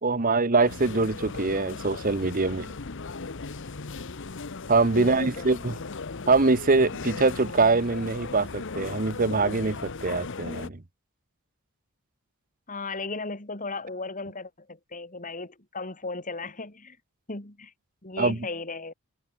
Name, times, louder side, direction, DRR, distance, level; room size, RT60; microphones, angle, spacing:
voice 1, 0.0-2.7 4.7-5.7 6.3-10.8 18.2-18.5, right 3 dB, 40° right, 1.0 m, -23 dB
sound 1, 0.6-10.7, left 4 dB, 55° left, 0.9 m, -37 dB
voice 2, 4.9-5.7 12.7-17.0 17.3-17.7 18.0-18.9, left 3 dB, 35° left, 3.0 m, -36 dB
head